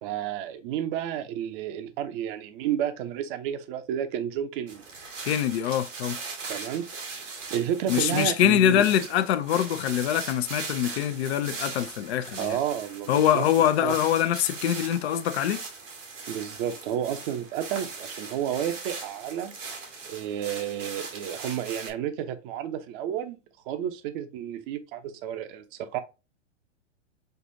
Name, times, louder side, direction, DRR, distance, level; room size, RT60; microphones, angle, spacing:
voice 1, 0.0-4.8 6.5-8.9 12.4-13.5 13.8-14.0 16.3-19.5 20.1-23.4 23.7-26.0, right 10 dB, 45° right, 0.8 m, -31 dB
sound 1, 4.7-21.9, right 4 dB, 85° right, 1.7 m, -39 dB
voice 2, 5.3-6.2 7.9-12.6 13.1-15.6, left 11 dB, 60° left, 0.7 m, -24 dB
6.6 x 2.4 x 2.7 m
hypercardioid pair, 115°, 37 cm